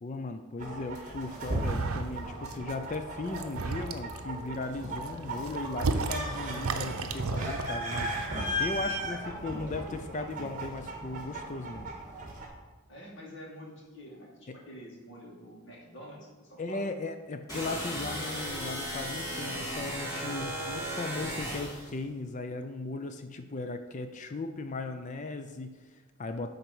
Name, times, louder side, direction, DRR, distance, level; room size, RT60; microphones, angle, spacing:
voice 1, 0.0-8.1 8.6-11.9 14.5-14.6 16.6-26.5, left 3 dB, 35° left, 8 dB, 0.4 m, -37 dB
sound 1, 0.6-12.5, equal, 35° right, 1.7 m, -37 dB
sound 2, 1.5-2.2 2.5-2.9 3.3-4.2 4.8-8.3, right 3 dB, 80° right, 0.7 m, -33 dB
voice 2, 12.9-16.9, equal, 55° left, -3 dB, 2.4 m, -47 dB
sound 3, 17.5-21.9, equal, 15° left, 2.7 m, -35 dB
10.0 x 4.0 x 6.1 m, 1.3 s
head